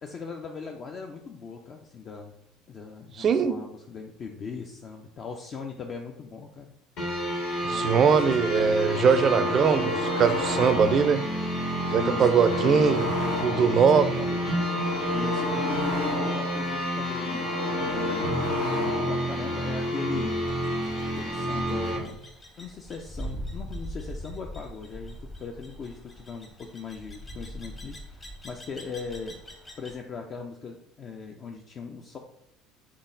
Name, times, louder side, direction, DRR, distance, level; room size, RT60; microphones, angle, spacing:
voice 1, 0.0-2.3 2.7-6.7 7.7-8.4 8.9-9.7 11.9-12.3 13.8-14.7 15.1-18.4 18.8-20.4 21.1-22.2 22.6-29.4 29.8-32.2, left 5 dB, 40° left, 3 dB, 0.4 m, -39 dB
voice 2, 3.2-3.6 7.6-11.2 11.9-13.1 13.4-14.1, right 6 dB, 40° right, 11 dB, 0.3 m, -21 dB
sound 1, 7.0-22.0, equal, 60° left, 1.5 m, -30 dB
sound 2, 8.8-11.1 11.5-13.8 14.2-16.5 16.9-19.3, left 2 dB, 80° left, 0.9 m, -32 dB
sound 3, 20.5-30.0, equal, 20° left, 0.7 m, -42 dB
3.7 x 3.5 x 2.5 m, 0.87 s
hypercardioid pair, 70°, 0 cm